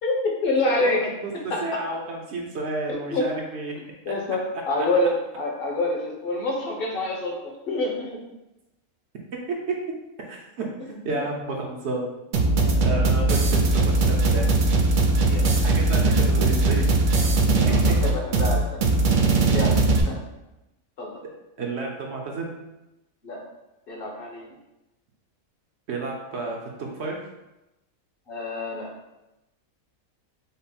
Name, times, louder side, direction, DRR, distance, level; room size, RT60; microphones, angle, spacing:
voice 1, 0.0-1.1 1.3-1.8 3.1-3.3 4.0-8.2 11.1-11.2 12.5-12.8 15.3-15.5 17.5-18.8 19.5-19.8 20.0-20.2 21.0-21.2 23.2-23.4 23.9-24.5 28.3-28.9, left 2 dB, 45° left, -1 dB, 1.0 m, -27 dB
voice 2, 0.8-3.7 9.5-9.8 10.3-12.0 12.8-14.5 15.6-16.9 17.6-17.7 21.6-22.6 25.9-27.2, right 3 dB, 60° right, 0 dB, 0.9 m, -31 dB
sound 1, 12.3-20.0, right 2 dB, 85° right, 0.4 m, -20 dB
5.3 x 2.0 x 4.2 m, 0.96 s
omnidirectional pair, 1.5 m